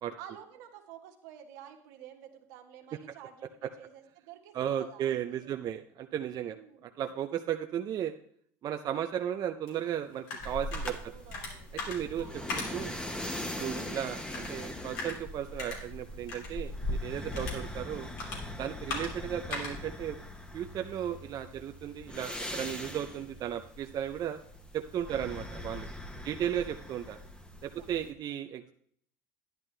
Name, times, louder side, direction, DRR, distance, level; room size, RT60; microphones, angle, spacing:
voice 1, 0.2-5.5 6.4-7.0 10.8-11.7 12.0-12.5 13.4-13.7 22.7-23.1 25.0-25.7 26.1-26.4 27.8-28.2, right 10 dB, 80° right, 4 dB, 1.5 m, -51 dB
voice 2, 4.5-6.6 6.8-8.1 8.6-11.0 11.7-12.2 12.5-13.0 13.6-18.1 18.6-20.2 20.5-24.4 24.7-25.9 26.2-27.2 27.6-28.7, right 10 dB, 45° right, 6 dB, 0.5 m, -35 dB
sound 1, 9.7-21.3, left 3 dB, 80° left, 3.0 m, -43 dB
sound 2, 10.4-28.1, left 1 dB, 10° left, 1.1 m, -41 dB
10.5 x 10.5 x 3.3 m, 0.62 s
supercardioid pair, 95°, 9 cm